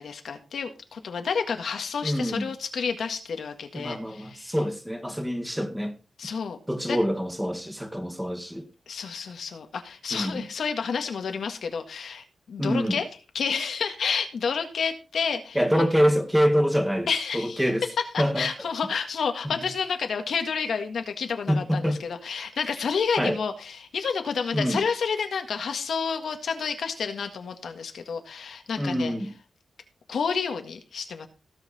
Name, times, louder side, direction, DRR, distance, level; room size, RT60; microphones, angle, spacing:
voice 1, 0.0-4.5 6.2-6.6 6.9-7.0 8.9-13.1 13.3-15.6 17.1-17.7 18.1-29.1 30.1-31.3, left 6 dB, 85° left, 1.7 m, -30 dB
voice 2, 2.0-2.5 3.7-5.9 6.7-8.7 10.1-10.4 12.6-13.0 15.6-17.1 17.3-17.8 18.2-18.5 21.5-22.0 23.2-23.4 24.5-24.8 28.8-29.3, equal, 5° right, 1.8 m, -25 dB
17.0 x 5.8 x 4.2 m
wide cardioid pair, 115°, 0 cm